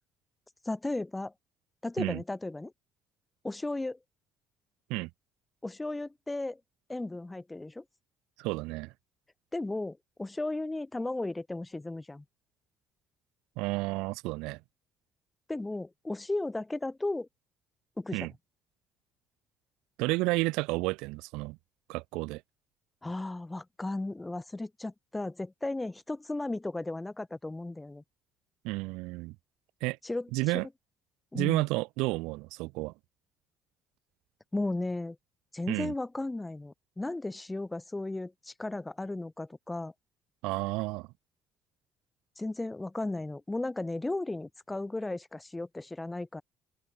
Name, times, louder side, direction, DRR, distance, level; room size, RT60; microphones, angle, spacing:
voice 1, 0.7-1.3 1.8-2.7 3.4-4.0 5.6-6.6 6.9-7.8 9.5-12.2 15.5-17.3 18.0-18.3 23.0-28.0 30.0-30.3 31.3-31.6 34.5-35.2 35.5-39.9 42.4-46.4, left 2 dB, 15° left, 2.3 m, -35 dB
voice 2, 8.4-8.9 13.6-14.6 18.1-18.3 20.0-21.6 21.9-22.4 28.6-29.3 29.8-30.0 30.3-30.7 31.3-32.9 35.7-35.9 40.4-41.1, right 23 dB, 90° right, 1.3 m, -31 dB
open air
cardioid pair, 90°, 0 cm